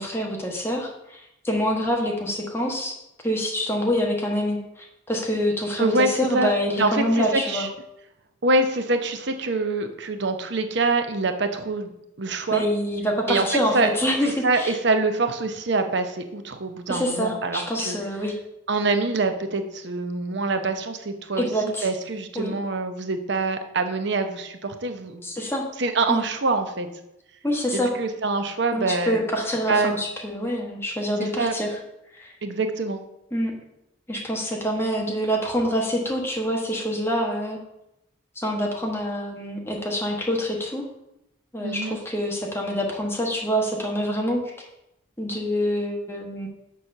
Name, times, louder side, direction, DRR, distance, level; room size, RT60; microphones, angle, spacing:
voice 1, 0.0-3.0 3.2-7.7 12.5-14.8 16.9-18.4 21.4-21.9 22.3-22.5 25.2-25.7 26.1-26.2 27.4-27.9 28.7-31.7 32.1-32.3 33.3-33.5 34.1-37.6 38.3-40.8 41.5-44.4 45.2-46.5, equal, 10° left, 0 dB, 1.2 m, -26 dB
voice 2, 5.8-6.5 6.8-7.7 8.4-11.9 12.2-12.6 13.3-13.5 13.7-13.9 14.2-18.0 18.7-25.3 25.8-26.9 27.7-29.2 29.7-29.9 31.2-31.5 32.4-33.0 41.6-42.0, right 3 dB, 60° right, 7 dB, 0.8 m, -25 dB
6.3 x 4.3 x 6.5 m, 0.86 s
head